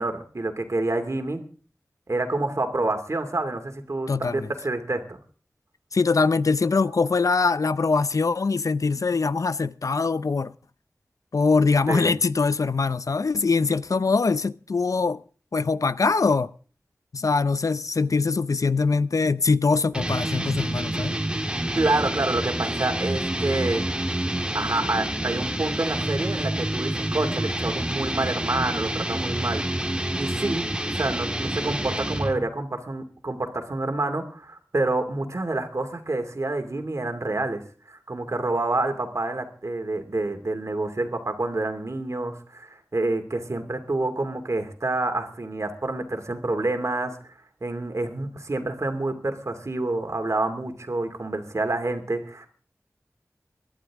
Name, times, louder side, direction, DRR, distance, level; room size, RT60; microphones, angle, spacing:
voice 1, 0.0-1.4 2.1-5.2 11.9-12.1 21.7-23.8 24.5-29.6 29.9-30.7 30.9-37.6 37.9-47.2 47.6-52.5, right 2 dB, 60° right, 2.5 m, -28 dB
voice 2, 4.1-4.5 5.9-10.5 11.3-15.2 15.5-16.5 17.1-21.2, left 4 dB, 75° left, 0.5 m, -23 dB
sound 1, 19.9-32.5, right 1 dB, 15° right, 1.6 m, -28 dB
22.5 x 11.5 x 3.6 m
wide cardioid pair, 65°, 6 cm